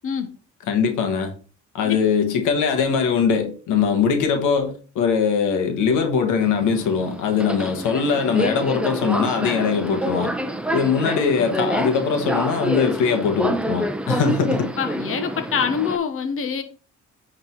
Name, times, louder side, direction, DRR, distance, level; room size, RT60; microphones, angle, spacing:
voice 1, 0.7-1.3 1.7-10.3 10.7-14.7, left 6 dB, 90° left, 1.5 m, -21 dB
Subway metro underground, 6.4-16.0, right 1 dB, 5° right, 0.8 m, -27 dB
voice 2, 14.8-16.6, left 7 dB, 45° left, 1.1 m, -25 dB
9.5 x 3.9 x 4.6 m
cardioid pair, 90°, 30 cm